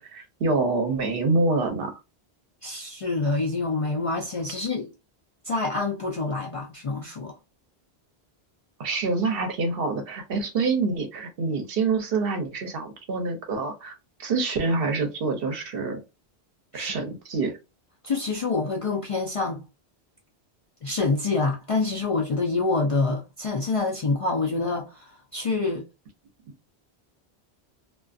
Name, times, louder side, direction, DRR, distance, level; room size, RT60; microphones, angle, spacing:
voice 1, 0.0-1.9 8.8-13.9 14.2-16.0 16.7-17.5, right 3 dB, 65° right, 0.8 m, -26 dB
voice 2, 2.6-4.9 5.4-7.3 16.7-16.9 18.0-19.6 20.8-25.8, left 3 dB, 50° left, 0.4 m, -26 dB
2.3 x 2.3 x 2.4 m
omnidirectional pair, 1.1 m